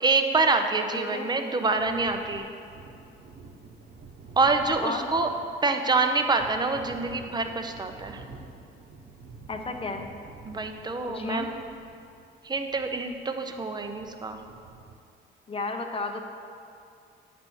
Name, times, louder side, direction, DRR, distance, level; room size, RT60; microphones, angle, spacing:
voice 1, 0.0-2.5 4.4-5.3 5.6-8.2 10.4-11.5 12.4-14.4, right 3 dB, 20° right, 6 dB, 0.6 m, -26 dB
voice 2, 0.9-1.3 4.8-5.1 9.5-10.1 11.1-11.5 15.5-16.2, left 3 dB, 30° left, 4 dB, 0.7 m, -32 dB
sound 1, 1.6-15.0, right 3 dB, 65° right, 0.9 m, -48 dB
9.2 x 3.4 x 6.1 m, 2.5 s
cardioid pair, 90°, 20 cm